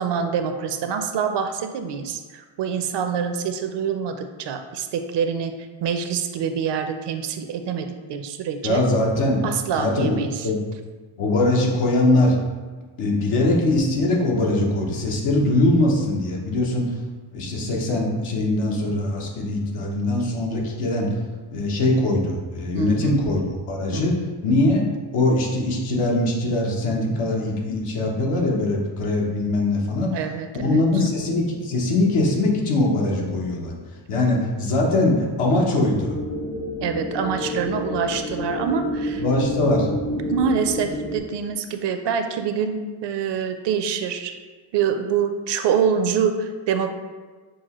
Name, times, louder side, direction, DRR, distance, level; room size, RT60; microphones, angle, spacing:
voice 1, 0.0-5.5 5.8-8.8 9.4-10.5 22.7-23.2 23.9-24.3 30.1-30.8 36.8-39.2 40.3-44.3 44.7-46.9, right 7 dB, 60° right, 7 dB, 0.5 m, -25 dB
voice 2, 8.6-9.5 9.7-10.6 11.2-12.3 13.0-16.9 17.3-21.1 21.5-24.1 24.4-30.2 30.6-33.7 34.1-36.1 39.2-39.9, left 2 dB, 80° left, -2 dB, 1.1 m, -22 dB
sound 1, 36.0-41.2, left 1 dB, 55° left, 1.2 m, -29 dB
6.1 x 2.1 x 3.0 m, 1.4 s
cardioid pair, 70°, 50 cm